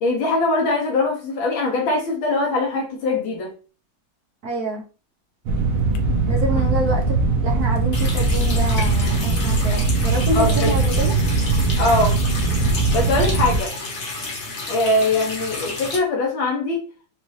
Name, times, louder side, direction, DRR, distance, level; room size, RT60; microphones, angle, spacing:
voice 1, 0.0-3.5 10.3-10.7 11.8-12.2 12.9-13.7 14.7-16.8, left 2 dB, 70° left, 1.6 m, -22 dB
voice 2, 4.4-4.8 6.3-7.2 7.4-11.1, right 1 dB, 55° right, 1.1 m, -27 dB
sound 1, 5.5-13.6, right 3 dB, 80° right, 1.5 m, -20 dB
sound 2, 6.0-6.6 7.0-7.1 7.8-7.9 8.1-9.3, left 1 dB, 85° left, 1.7 m, -29 dB
Water tap faucet, 7.9-16.0, left 3 dB, 45° left, 1.3 m, -31 dB
5.3 x 2.5 x 3.1 m
omnidirectional pair, 2.3 m